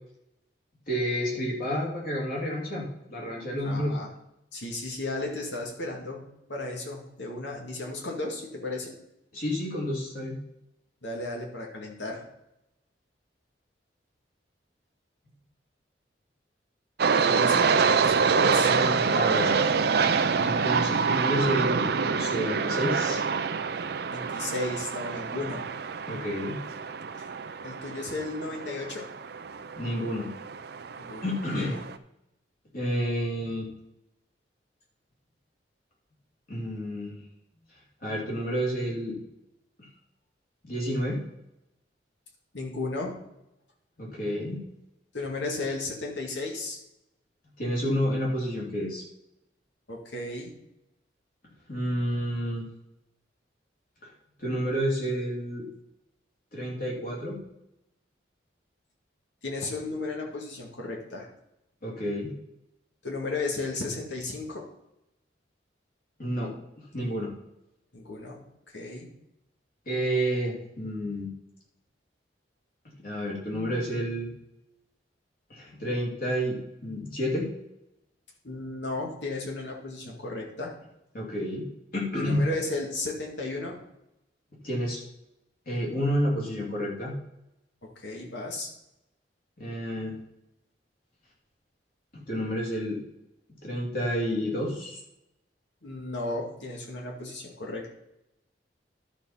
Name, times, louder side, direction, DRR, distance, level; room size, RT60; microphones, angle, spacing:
voice 1, 0.9-4.0 9.3-10.4 18.6-19.5 20.4-23.2 26.1-26.6 29.7-30.3 31.2-31.8 32.7-33.7 36.5-37.2 38.0-39.2 40.6-41.2 44.0-44.6 47.6-49.0 51.7-52.7 54.4-55.7 56.5-57.4 61.8-62.3 66.2-66.5 66.8-67.3 69.9-71.3 73.0-74.3 75.5-77.5 81.1-81.7 81.9-82.4 84.5-85.0 85.7-87.2 89.6-90.2 92.1-93.0 93.6-95.0, equal, 50° left, -3 dB, 2.8 m, -30 dB
voice 2, 3.6-4.1 4.5-8.9 11.0-12.2 17.3-18.7 24.1-25.6 27.2-27.3 27.6-29.1 31.0-31.2 31.6-31.8 42.5-43.1 45.1-46.8 49.9-50.5 59.4-61.3 63.0-64.6 67.9-68.4 68.7-69.1 78.4-80.7 82.2-83.8 87.8-88.7 95.8-97.9, left 2 dB, 75° left, -1 dB, 2.2 m, -34 dB
sound 1, 17.0-31.9, right 5 dB, 55° right, 0.5 m, -26 dB
11.5 x 4.5 x 5.7 m, 0.87 s
head